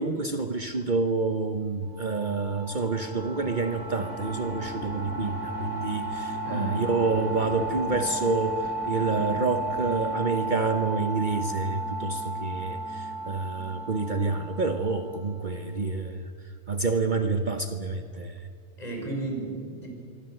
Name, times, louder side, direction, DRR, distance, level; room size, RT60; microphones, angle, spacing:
voice 1, 0.0-16.3 16.7-18.4, right 3 dB, 45° right, 7 dB, 1.1 m, -28 dB
sound 1, 1.9-15.4, right 2 dB, 80° left, 3.3 m, -34 dB
voice 2, 6.4-6.9 18.8-19.9, right 2 dB, 35° left, 1 dB, 6.2 m, -33 dB
26.5 x 23.5 x 7.8 m, 2.3 s
omnidirectional pair, 1.2 m